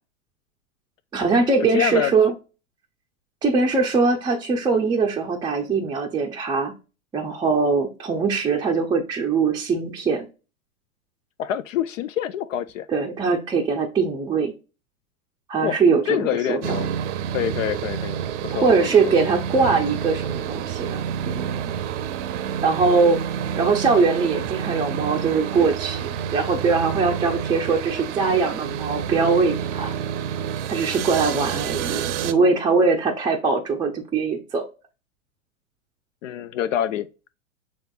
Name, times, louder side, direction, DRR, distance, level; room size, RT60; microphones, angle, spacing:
voice 1, 1.1-2.3 3.4-6.7 7.1-10.3 12.9-14.5 15.5-16.8 18.5-21.7 22.6-23.2 23.6-29.9 30.7-34.6, right 4 dB, 10° right, 0.5 m, -22 dB
voice 2, 1.7-2.1 11.4-12.9 15.6-15.8 16.1-16.9 17.3-19.1 36.2-37.1, left 10 dB, 65° left, 0.5 m, -26 dB
sound 1, 16.6-32.3, right 8 dB, 55° right, 0.6 m, -29 dB
6.3 x 3.5 x 2.3 m
hypercardioid pair, 105°, 42 cm